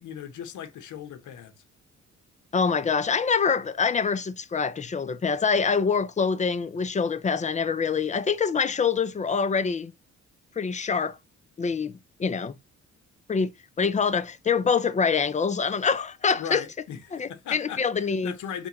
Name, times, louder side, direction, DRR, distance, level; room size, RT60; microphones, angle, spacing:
voice 1, 0.0-1.6 16.4-18.7, left 9 dB, 75° left, 1.0 m, -38 dB
voice 2, 2.5-9.9 10.6-11.2 11.6-11.9 12.2-12.6 13.3-13.5 13.8-16.6 17.1-18.3, left 5 dB, 25° left, 0.5 m, -25 dB
4.4 x 3.4 x 2.9 m
cardioid pair, 90°, 30 cm